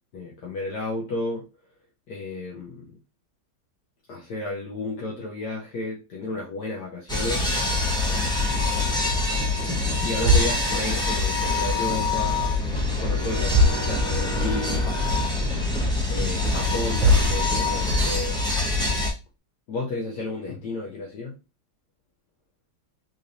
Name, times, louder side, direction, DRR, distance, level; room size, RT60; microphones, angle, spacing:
voice 1, 0.1-1.5 2.1-2.9 4.1-7.5 8.0-8.5 10.0-12.5 13.0-14.8 16.1-18.4 19.7-21.3, left 2 dB, 70° left, 1.4 m, -32 dB
sound 1, 7.1-19.1, left 2 dB, 5° left, 0.5 m, -25 dB
sound 2, 10.1-11.9 12.1-12.8 13.1-13.2 13.4-14.5 14.8-14.9 15.5-15.6 16.6-16.7 17.0-18.0, equal, 85° right, 1.3 m, -25 dB
3.9 x 3.2 x 2.6 m
omnidirectional pair, 1.9 m